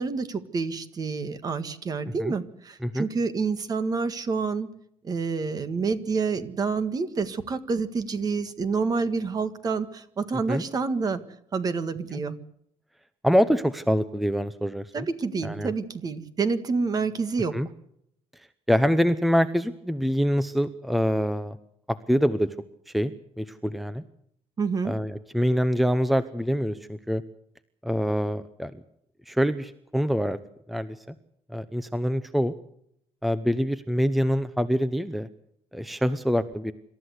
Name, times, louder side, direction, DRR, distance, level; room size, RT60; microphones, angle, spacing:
voice 1, 0.0-4.7 5.0-11.2 11.5-12.4 14.9-17.6 24.6-25.0, right 4 dB, 35° right, 11 dB, 1.7 m, -28 dB
voice 2, 13.2-15.1 15.4-15.7 17.5-17.7 18.7-21.6 21.9-22.5 22.9-23.1 23.4-24.0 24.8-27.2 27.8-28.7 29.3-30.4 30.7-31.1 31.5-32.5 33.2-35.3 35.7-36.7, equal, ahead, 12 dB, 0.8 m, -25 dB
27.0 x 13.5 x 8.1 m, 0.72 s
cardioid pair, 155°, 11 cm